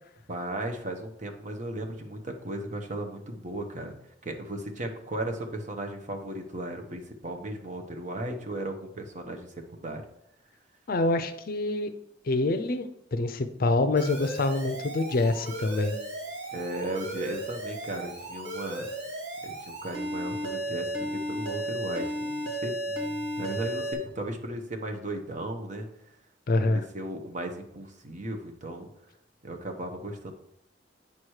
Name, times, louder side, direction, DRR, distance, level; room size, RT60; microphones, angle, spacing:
voice 1, 0.3-3.9 4.2-10.0 16.5-18.9 19.4-25.9 26.6-28.9 29.4-30.3, right 1 dB, 40° right, 3 dB, 1.0 m, -36 dB
voice 2, 10.9-11.9 12.2-16.0 26.5-26.8, left 2 dB, 50° left, 10 dB, 0.5 m, -26 dB
Alarm, 14.0-23.9, right 1 dB, 90° right, 2.1 m, -34 dB
8.6 x 3.1 x 6.4 m, 0.78 s
head